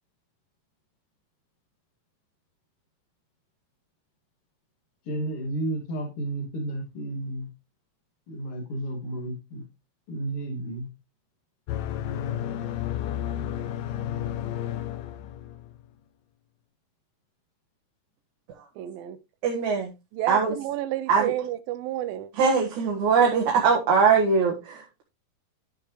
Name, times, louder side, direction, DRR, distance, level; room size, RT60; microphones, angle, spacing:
voice 1, 5.1-7.5 8.3-9.6 10.1-10.9, right 1 dB, 45° left, 3.0 m, -32 dB
sound 1, 11.7-15.8, left 11 dB, 80° left, 1.6 m, -32 dB
voice 2, 18.8-19.2 20.1-22.3, right 13 dB, 90° right, 2.5 m, -30 dB
voice 3, 19.4-19.9 20.3-20.5 21.1-21.3 22.3-25.0, right 5 dB, 60° right, 2.7 m, -21 dB
11.5 x 6.8 x 3.1 m
omnidirectional pair, 4.0 m